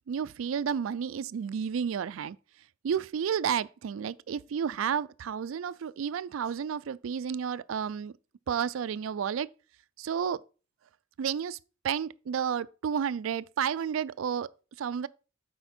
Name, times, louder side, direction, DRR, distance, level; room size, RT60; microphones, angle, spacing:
voice 1, 0.1-2.4 2.8-8.1 8.5-9.5 10.0-10.4 11.2-11.6 11.8-14.5 14.8-15.1, right 7 dB, 75° right, 0.3 m, -31 dB
7.9 x 5.0 x 4.3 m
head